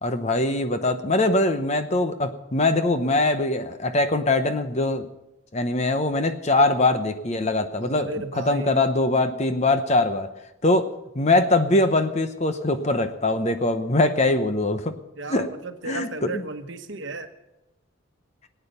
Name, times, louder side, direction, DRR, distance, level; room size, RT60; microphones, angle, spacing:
voice 1, 0.0-5.1 5.5-8.1 8.5-10.3 10.6-10.9 11.1-14.9 15.3-15.5 15.9-16.4, left 2 dB, 30° left, 9 dB, 0.8 m, -22 dB
voice 2, 7.8-8.8 15.2-17.3, right 2 dB, 60° right, 7 dB, 1.1 m, -34 dB
19.0 x 9.1 x 6.8 m, 0.93 s
head